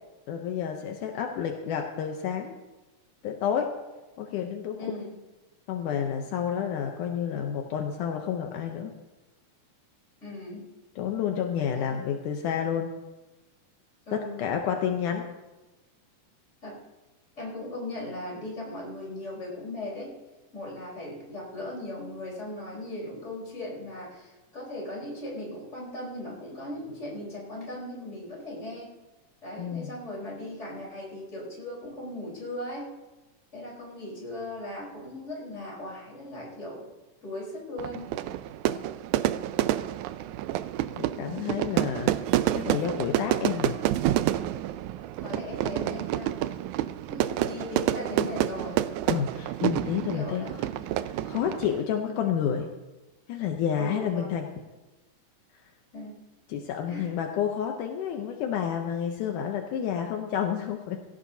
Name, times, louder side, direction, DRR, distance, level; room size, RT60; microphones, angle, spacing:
voice 1, 0.3-2.5 3.2-3.7 4.2-4.9 5.7-8.9 11.0-12.9 14.1-15.3 29.6-30.0 41.0-42.1 42.5-43.8 49.1-50.5 51.0-52.7 53.3-54.5 56.5-61.0, left 8 dB, 80° left, 3 dB, 2.3 m, -30 dB
voice 2, 4.8-5.1 10.2-10.7 11.7-12.0 14.1-14.4 16.6-16.8 17.4-20.1 20.5-28.9 29.4-32.9 33.5-36.8 37.2-38.1 45.2-46.4 47.1-48.8 49.8-50.9 52.0-52.3 53.8-54.3 55.9-56.2 56.9-57.1, left 1 dB, 20° left, -3 dB, 4.5 m, -38 dB
Fire / Fireworks, 37.8-51.8, right 13 dB, 80° right, 1.8 m, -28 dB
17.5 x 16.0 x 2.8 m, 1.1 s
omnidirectional pair, 3.7 m